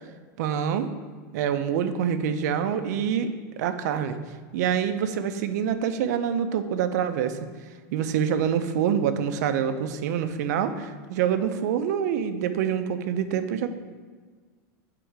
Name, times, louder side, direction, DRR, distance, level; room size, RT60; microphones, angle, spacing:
voice 1, 0.4-0.9 1.3-3.3 3.6-4.2 4.5-7.4 7.9-13.7, right 8 dB, 70° right, 9 dB, 0.5 m, -26 dB
7.9 x 3.8 x 4.6 m, 1.5 s
supercardioid pair, 150°, 9 cm